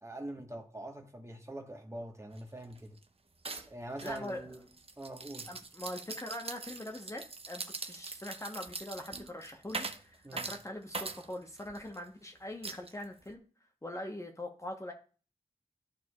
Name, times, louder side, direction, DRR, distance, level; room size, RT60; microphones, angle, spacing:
voice 1, 0.0-3.0 3.7-4.6 5.0-5.5 10.2-10.5, right 1 dB, 20° right, 1.2 m, -44 dB
sound 1, 2.3-2.4 2.7-3.0 3.4-12.0 12.6-13.3, right 4 dB, 45° right, 0.7 m, -42 dB
voice 2, 4.0-4.5 5.5-13.4 13.8-14.9, left 1 dB, 20° left, 0.9 m, -42 dB
13.0 x 4.6 x 2.3 m
wide cardioid pair, 80°, 14 cm